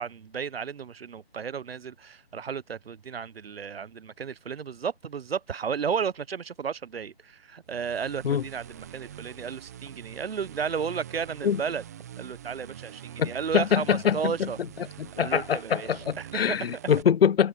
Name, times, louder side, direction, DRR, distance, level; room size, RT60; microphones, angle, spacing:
voice 1, 0.0-11.8 12.2-14.6 15.2-16.6, right 6 dB, 65° right, 0.9 m, -33 dB
sound 1, 7.7-17.0, right 10 dB, 15° right, 0.8 m, -44 dB
voice 2, 13.2-14.5 15.0-17.5, left 8 dB, 65° left, 0.5 m, -24 dB
hypercardioid pair, 160°, 32 cm